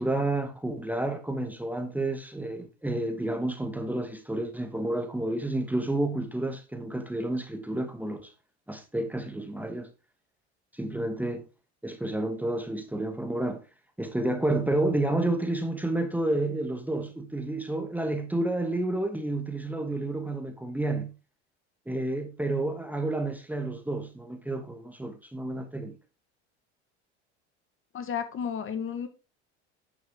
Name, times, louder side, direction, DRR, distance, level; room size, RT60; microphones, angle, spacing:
voice 1, 0.0-8.3 8.7-9.9 10.7-11.4 11.8-13.6 14.0-21.1 21.9-25.9, right 2 dB, 5° right, 1.2 m, -30 dB
voice 2, 27.9-29.1, left 7 dB, 35° left, 1.5 m, -32 dB
10.5 x 6.2 x 3.7 m
hypercardioid pair, 80°, 35 cm